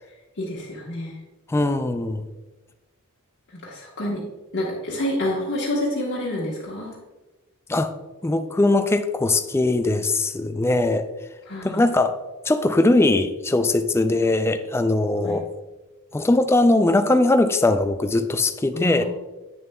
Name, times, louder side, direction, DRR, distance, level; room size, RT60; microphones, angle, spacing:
voice 1, 0.4-1.1 3.5-4.2 4.5-6.9 11.5-11.8 15.2-15.4 18.7-19.0, left 1 dB, 55° left, -5 dB, 1.3 m, -28 dB
voice 2, 1.5-2.2 7.7-7.9 8.2-11.1 11.6-12.1 12.4-15.5 16.1-19.0, left 2 dB, 10° left, 8 dB, 0.3 m, -20 dB
8.7 x 6.6 x 2.2 m, 1.1 s
head